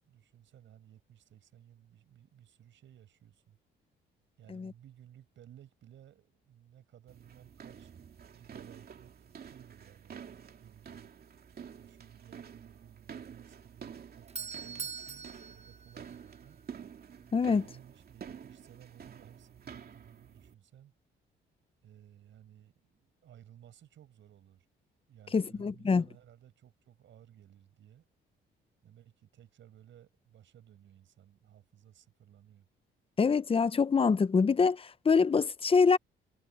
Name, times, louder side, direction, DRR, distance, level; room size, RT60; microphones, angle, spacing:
voice 1, 0.0-3.6 4.4-7.9 8.3-10.3 10.6-11.1 11.8-16.6 17.5-20.9 21.8-24.7 25.1-28.0 28.8-32.7, right 10 dB, 70° right, 6.7 m, -57 dB
sound 1, 7.1-20.5, right 7 dB, 50° right, 2.7 m, -49 dB
Doorbell, 13.9-16.8, right 6 dB, 30° right, 1.0 m, -43 dB
voice 2, 17.3-17.7 25.3-26.0 33.2-36.0, left 5 dB, 30° left, 0.8 m, -25 dB
cardioid pair, 90°, 20 cm